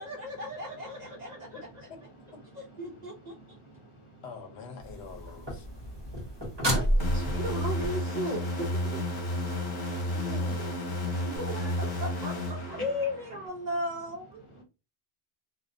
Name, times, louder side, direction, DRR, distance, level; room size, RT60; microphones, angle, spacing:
voice 1, 0.0-1.9 2.5-3.3 6.6-9.0 11.3-14.6, equal, 55° right, 1 dB, 0.5 m, -36 dB
voice 2, 1.7-2.8 3.5-4.1 4.8-6.7 10.9-11.2, right 1 dB, 30° left, 0 dB, 0.7 m, -54 dB
voice 3, 4.2-5.6 10.0-10.8, left 4 dB, 80° left, 6 dB, 0.9 m, -44 dB
sound 1, 4.8-7.9 11.4-11.5, equal, 25° right, 1.0 m, -30 dB
sound 2, 7.0-13.5, left 1 dB, 50° left, 1.1 m, -32 dB
2.3 x 2.2 x 2.4 m, 0.29 s
omnidirectional pair, 1.1 m